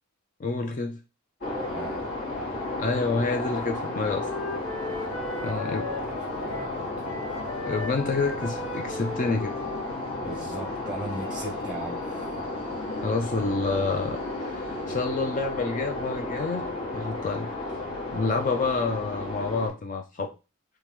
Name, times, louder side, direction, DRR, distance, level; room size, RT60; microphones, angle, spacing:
voice 1, 0.4-1.0 2.8-4.3 5.4-5.9 7.6-9.5 13.0-17.5 18.1-20.3, left 3 dB, 40° left, 5 dB, 0.4 m, -28 dB
sound 1, 1.4-19.7, left 2 dB, 55° left, 2.0 m, -33 dB
voice 2, 1.4-2.1 5.2-6.9 10.2-12.4, right 2 dB, 5° right, 1 dB, 0.9 m, -39 dB
Wind instrument woodwind instrument, 3.7-6.8 7.0-10.9, left 3 dB, 85° left, 0.8 m, -38 dB
3.7 x 3.2 x 3.0 m, 0.29 s
head